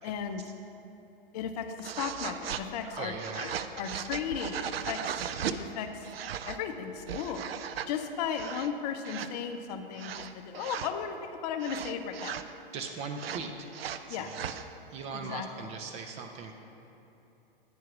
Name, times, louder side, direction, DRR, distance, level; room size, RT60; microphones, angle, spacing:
voice 1, 0.0-0.4 1.3-5.1 5.5-6.1 6.5-7.4 7.9-12.4 14.1-14.3 15.1-15.5, left 7 dB, 45° left, 7 dB, 0.6 m, -35 dB
sound 1, 1.8-2.7 3.2-5.6 6.0-6.6 7.0-7.9 8.3-8.7 9.0-9.3 10.0-10.9 11.6-12.5 13.2-14.6, right 9 dB, 85° right, 0.5 m, -37 dB
voice 2, 2.8-3.4 12.7-13.7 14.1-14.6 14.9-16.5, right 5 dB, 25° right, 4 dB, 0.4 m, -39 dB
9.3 x 4.7 x 6.0 m, 2.9 s
hypercardioid pair, 120°, 29 cm